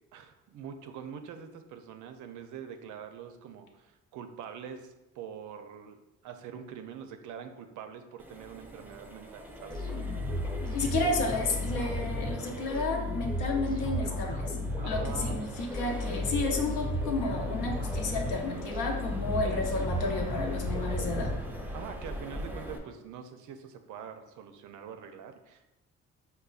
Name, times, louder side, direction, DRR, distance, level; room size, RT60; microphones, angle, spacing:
voice 1, 0.1-6.0 6.2-9.8 14.8-15.5 21.7-25.7, right 7 dB, 80° right, 7 dB, 0.5 m, -44 dB
Accelerating revving vroom, 8.2-22.8, equal, 5° right, 0.4 m, -43 dB
sound 1, 9.7-21.9, left 1 dB, 15° left, 0.8 m, -34 dB
voice 2, 10.7-14.6 14.8-21.3, left 3 dB, 85° left, 2 dB, 0.7 m, -32 dB
5.3 x 2.1 x 2.4 m, 0.98 s
cardioid pair, 90°, 30 cm